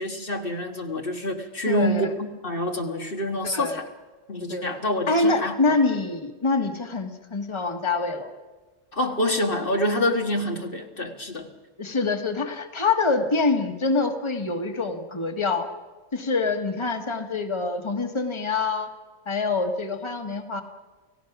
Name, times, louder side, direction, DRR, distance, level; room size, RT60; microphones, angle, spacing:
voice 1, 0.0-3.9 4.3-5.7 8.9-11.5, left 1 dB, 50° left, 3 dB, 1.7 m, -27 dB
voice 2, 1.7-2.1 3.5-3.8 4.5-4.7 5.1-8.3 11.8-15.7 16.1-18.9 19.3-20.6, left 3 dB, 25° left, 5 dB, 1.6 m, -25 dB
29.5 x 17.0 x 6.0 m, 1.3 s
omnidirectional pair, 1.2 m